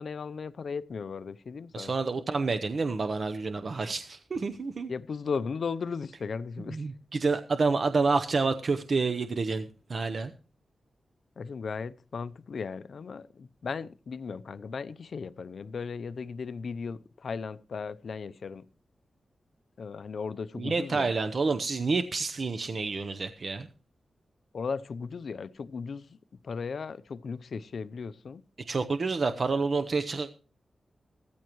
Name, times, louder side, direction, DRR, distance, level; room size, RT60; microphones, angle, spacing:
voice 1, 0.0-2.0 4.9-6.9 11.4-18.7 19.8-21.1 24.5-26.2 26.4-28.4, left 5 dB, 65° left, 0.6 m, -36 dB
voice 2, 1.7-4.9 6.7-10.3 20.5-23.7 28.7-30.3, right 4 dB, 50° right, 0.8 m, -28 dB
17.0 x 14.0 x 3.1 m
wide cardioid pair, 105°, 0 cm